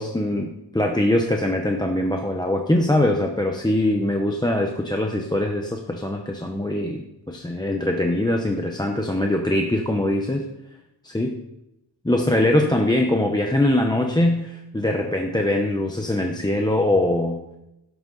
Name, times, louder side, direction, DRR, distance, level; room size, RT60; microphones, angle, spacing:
voice 1, 0.0-10.5 11.0-11.4 12.0-17.4, left 1 dB, 10° left, 2 dB, 0.9 m, -22 dB
16.5 x 7.9 x 4.0 m, 0.88 s
wide cardioid pair, 155°, 43 cm